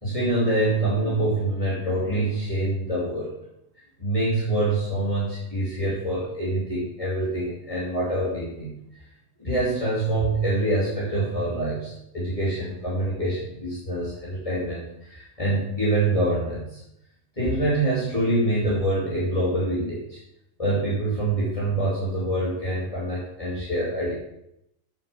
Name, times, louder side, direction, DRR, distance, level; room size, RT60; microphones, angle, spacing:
voice 1, 0.0-3.3 4.0-8.8 9.4-16.8 17.4-20.2 20.6-24.1, right 1 dB, 25° left, -8 dB, 2.8 m, -25 dB
7.5 x 6.8 x 7.2 m, 0.80 s
omnidirectional pair, 1.4 m